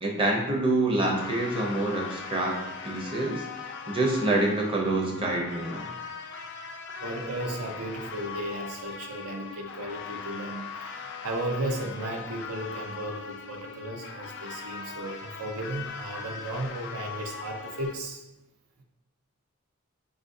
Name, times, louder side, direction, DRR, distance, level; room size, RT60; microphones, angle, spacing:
voice 1, 0.0-3.4 3.9-5.9, right 2 dB, 25° right, -1 dB, 0.6 m, -26 dB
sound 1, 1.2-17.9, left 5 dB, 50° left, 0.3 m, -40 dB
voice 2, 7.0-18.2, right 1 dB, 85° right, 2 dB, 0.6 m, -35 dB
4.8 x 2.4 x 2.6 m, 0.98 s
head